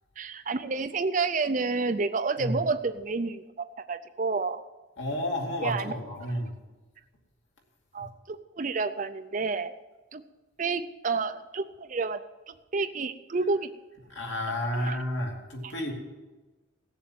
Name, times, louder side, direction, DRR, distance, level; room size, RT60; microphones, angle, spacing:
voice 1, 0.2-4.6 5.6-5.9 7.9-9.7 10.1-10.2 10.6-12.2 12.5-13.7 14.7-15.0 15.6-15.7, right 4 dB, 40° right, 10 dB, 0.5 m, -30 dB
voice 2, 5.0-6.5 8.0-8.1 14.1-15.9, left 1 dB, 65° left, 0 dB, 2.7 m, -31 dB
16.5 x 7.1 x 7.8 m, 1.2 s
head